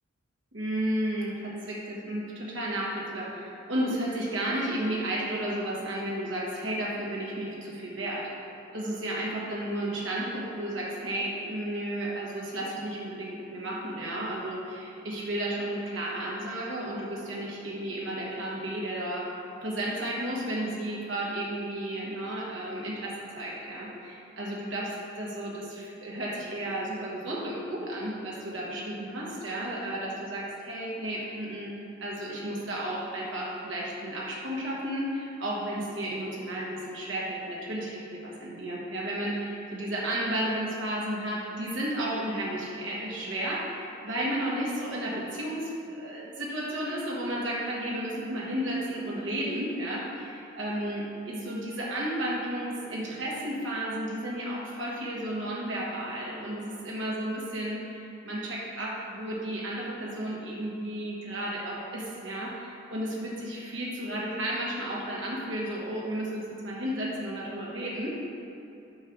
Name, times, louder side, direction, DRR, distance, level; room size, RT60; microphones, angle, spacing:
voice 1, 0.5-8.3 8.7-19.3 19.6-31.7 32.0-68.2, right 1 dB, 65° right, -5 dB, 1.3 m, -33 dB
8.5 x 3.3 x 6.0 m, 2.9 s
head